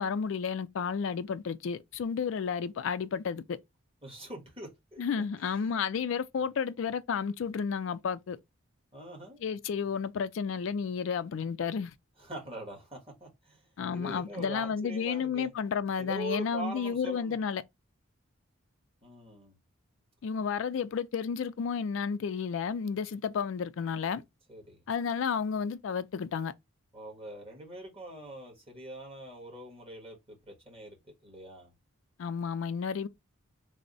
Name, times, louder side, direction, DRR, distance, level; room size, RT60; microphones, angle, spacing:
voice 1, 0.0-3.6 5.0-8.4 9.4-11.9 13.8-17.6 20.2-24.2 24.9-26.5 32.2-33.1, left 6 dB, 60° left, 0.3 m, -32 dB
voice 2, 4.0-5.0 5.4-5.6 8.9-9.4 12.2-13.6 13.9-15.5 16.0-17.4 19.0-19.5 24.5-24.8 26.9-31.7, right 1 dB, 25° right, 1.4 m, -43 dB
3.3 x 2.0 x 3.9 m
head